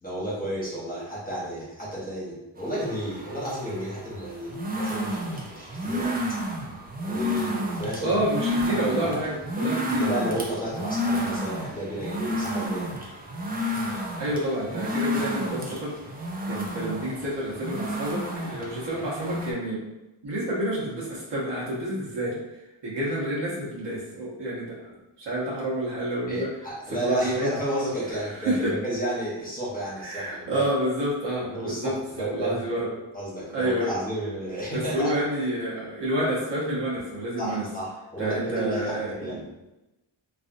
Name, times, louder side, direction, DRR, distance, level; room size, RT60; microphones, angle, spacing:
voice 1, 0.0-6.2 7.0-8.2 8.7-9.2 9.9-12.9 26.3-30.7 31.5-32.6 33.1-35.1 37.4-39.4, right 1 dB, 20° left, -8 dB, 1.2 m, -32 dB
sound 1, 2.6-19.5, equal, 20° right, 0.4 m, -31 dB
voice 2, 8.0-10.1 14.2-15.9 16.5-19.8 20.2-22.4 22.8-24.8 25.2-26.5 26.9-27.5 28.1-28.8 30.0-32.9 33.5-33.9 34.7-37.6 38.2-39.4, right 1 dB, 60° right, -6 dB, 1.1 m, -29 dB
3.2 x 2.6 x 2.6 m, 0.98 s
wide cardioid pair, 125°, 47 cm